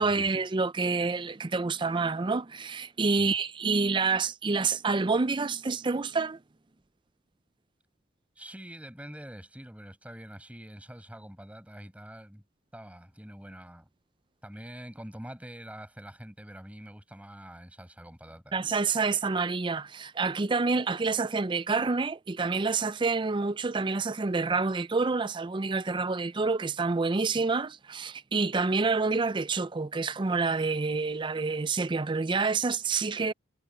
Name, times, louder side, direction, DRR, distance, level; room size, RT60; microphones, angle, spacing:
voice 1, 0.0-6.4 18.5-33.3, right 4 dB, 25° right, 0.4 m, -28 dB
voice 2, 8.4-12.4 12.7-13.9 14.4-18.6, equal, 5° right, 6.9 m, -45 dB
head